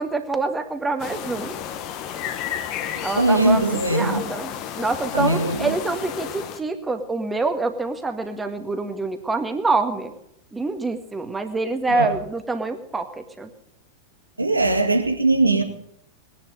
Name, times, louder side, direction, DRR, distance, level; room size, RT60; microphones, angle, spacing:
voice 1, 0.0-1.6 3.0-10.1 10.5-13.5, right 3 dB, 10° right, 1.9 m, -26 dB
sound 1, 1.0-6.6, left 9 dB, 40° left, 1.4 m, -32 dB
voice 2, 3.2-4.2 5.1-5.7 11.9-12.2 14.4-15.6, right 2 dB, 80° right, 1.9 m, -20 dB
20.5 x 11.0 x 5.2 m
figure-of-eight pair, 90°, 0 cm